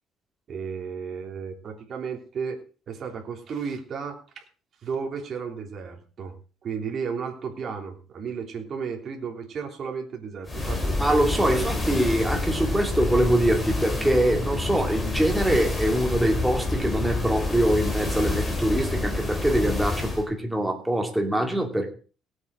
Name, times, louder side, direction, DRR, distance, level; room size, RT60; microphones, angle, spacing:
voice 1, 0.5-2.6 2.9-4.4 4.8-6.3 6.6-10.9 11.4-11.7, right 6 dB, 40° right, 2 dB, 3.3 m, -33 dB
sound 1, 10.5-20.3, left 2 dB, 15° left, 3.5 m, -28 dB
voice 2, 11.0-21.9, right 1 dB, 5° right, 3 dB, 2.5 m, -24 dB
18.0 x 8.2 x 4.9 m, 0.37 s
cardioid pair, 135°, 0 cm